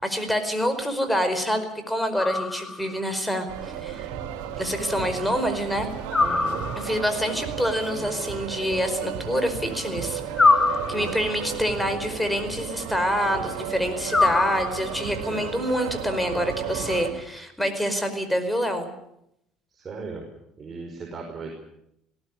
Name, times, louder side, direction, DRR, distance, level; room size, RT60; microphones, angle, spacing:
voice 1, 0.0-4.1 4.6-5.9 6.8-10.2 10.9-18.9, equal, 5° left, 8 dB, 4.8 m, -26 dB
sound 1, 2.2-3.0 6.1-7.1 10.3-11.4 14.1-15.1, left 3 dB, 20° left, 2.3 m, -23 dB
sound 2, 3.5-17.1, right 10 dB, 85° right, 4.1 m, -34 dB
voice 2, 6.2-6.7 10.9-11.2 15.3-15.5 19.7-20.2 20.6-21.5, right 4 dB, 35° right, 1 dB, 5.2 m, -37 dB
19.5 x 18.0 x 10.0 m, 0.79 s
supercardioid pair, 105°, 0 cm